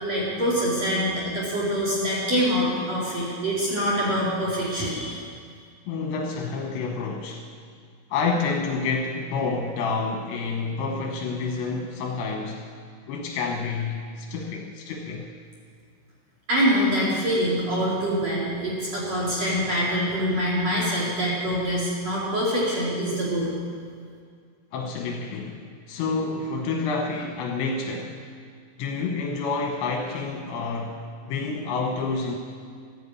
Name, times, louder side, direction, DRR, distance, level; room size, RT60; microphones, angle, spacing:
voice 1, 0.0-5.2 16.5-23.5, equal, 40° right, -6 dB, 3.2 m, -25 dB
voice 2, 5.9-7.4 8.1-12.7 13.1-15.3 24.7-28.2 28.8-32.4, left 4 dB, 75° left, 1 dB, 2.9 m, -29 dB
13.0 x 9.3 x 8.4 m, 2.1 s
omnidirectional pair, 5.7 m